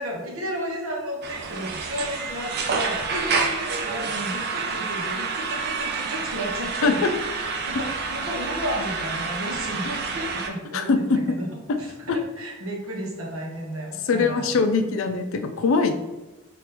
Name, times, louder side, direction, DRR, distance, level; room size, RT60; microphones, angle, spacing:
voice 1, 0.0-7.3 7.7-11.5 11.8-14.5 15.7-15.9, equal, 80° right, -2 dB, 0.9 m, -33 dB
sound 1, 1.2-10.5, right 4 dB, 50° right, 0.4 m, -28 dB
voice 2, 10.7-11.2 14.1-15.9, left 4 dB, 65° left, 8 dB, 0.4 m, -22 dB
3.4 x 2.5 x 2.9 m, 1.0 s
head